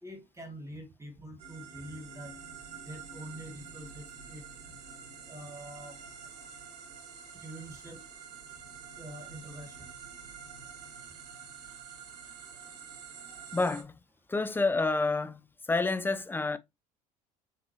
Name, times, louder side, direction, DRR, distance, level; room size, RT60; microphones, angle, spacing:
voice 1, 0.0-2.4 2.8-4.4 5.3-6.0 7.3-8.0 9.0-9.9, right 1 dB, 15° right, 1.7 m, -45 dB
sound 1, 1.4-13.8, right 6 dB, 75° right, 1.2 m, -47 dB
voice 2, 13.5-13.9 14.3-15.4 15.7-16.6, left 3 dB, 10° left, 0.5 m, -28 dB
6.5 x 2.7 x 3.0 m
figure-of-eight pair, 60°, 20 cm